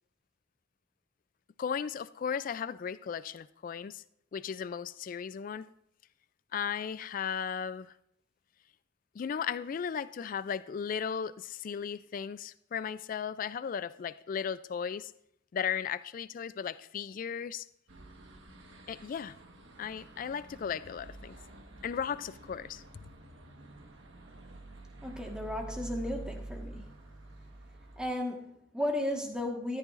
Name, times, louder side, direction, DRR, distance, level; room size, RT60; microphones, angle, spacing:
voice 1, 1.6-4.0 4.3-5.7 6.5-7.9 9.2-15.1 15.5-17.6 18.9-19.3 19.8-21.4 21.8-22.8, left 7 dB, 45° left, 0.3 m, -36 dB
sound 1, 17.9-28.1, right 2 dB, 85° right, 1.3 m, -48 dB
voice 2, 25.0-26.9 28.0-29.8, left 1 dB, 5° right, 1.5 m, -34 dB
14.0 x 11.0 x 2.5 m
head